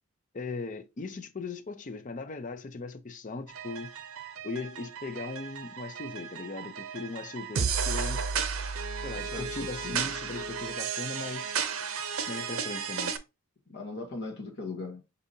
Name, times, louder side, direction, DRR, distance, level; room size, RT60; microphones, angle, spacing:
voice 1, 0.3-3.9 4.4-8.2 9.0-11.6 12.3-13.1, left 3 dB, 35° left, 0.5 m, -38 dB
sound 1, 3.5-13.2, right 6 dB, 75° right, 0.6 m, -34 dB
voice 2, 9.1-10.0 13.7-15.0, left 3 dB, 55° left, 1.0 m, -39 dB
6.5 x 2.7 x 2.7 m
head